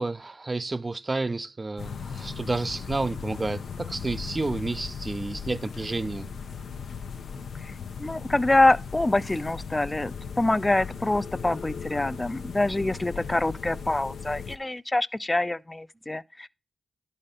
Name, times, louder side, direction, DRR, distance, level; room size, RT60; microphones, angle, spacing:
voice 1, 0.0-6.3, right 3 dB, 35° right, 0.4 m, -30 dB
sound 1, 1.8-14.6, left 6 dB, 85° left, 0.6 m, -37 dB
voice 2, 8.0-16.5, left 2 dB, 25° left, 0.4 m, -25 dB
11.0 x 4.2 x 5.1 m
cardioid pair, 45°, 0 cm